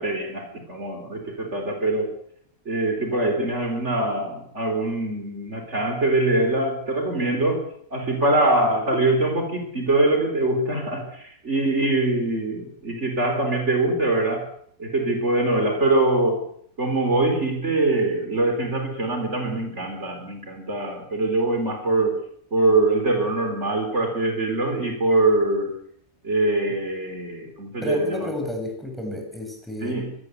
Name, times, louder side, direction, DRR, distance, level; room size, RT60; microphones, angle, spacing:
voice 1, 0.0-2.1 2.7-14.5 14.8-16.5 16.8-22.2 22.5-25.8 26.2-28.3 29.8-30.2, right 2 dB, 55° right, 4 dB, 4.6 m, -23 dB
voice 2, 27.8-30.0, left 1 dB, ahead, 2 dB, 7.8 m, -30 dB
24.5 x 19.5 x 8.3 m, 0.65 s
omnidirectional pair, 1.4 m